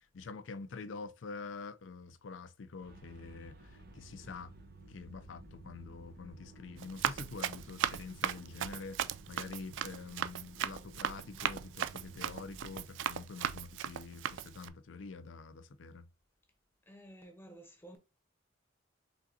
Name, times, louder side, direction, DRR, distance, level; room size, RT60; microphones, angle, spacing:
voice 1, 0.0-4.5 4.9-16.1, left 4 dB, 70° left, 0.5 m, -46 dB
sound 1, 2.8-12.8, right 2 dB, 50° right, 1.0 m, -54 dB
Run, 6.8-14.7, right 9 dB, 65° right, 0.3 m, -37 dB
voice 2, 16.9-18.0, right 1 dB, 10° left, 1.0 m, -52 dB
5.0 x 3.7 x 2.7 m
head